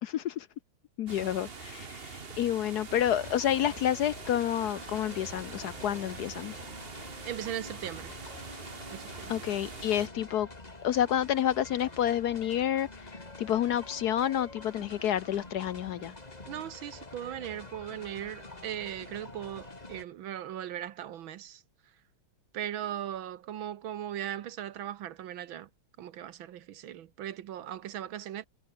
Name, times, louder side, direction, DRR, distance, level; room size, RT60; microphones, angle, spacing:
voice 1, 0.0-0.5 1.0-6.5 9.3-10.5 10.8-13.1 13.4-16.1, left 11 dB, 75° left, 0.9 m, -29 dB
sound 1, 1.1-10.1, right 5 dB, 30° right, 1.5 m, -44 dB
sound 2, 2.9-20.0, left 2 dB, 20° left, 2.4 m, -47 dB
voice 2, 7.2-8.1 8.9-9.3 16.5-21.6 22.5-25.7 26.0-28.5, right 11 dB, 70° right, 1.6 m, -38 dB
omnidirectional pair, 2.4 m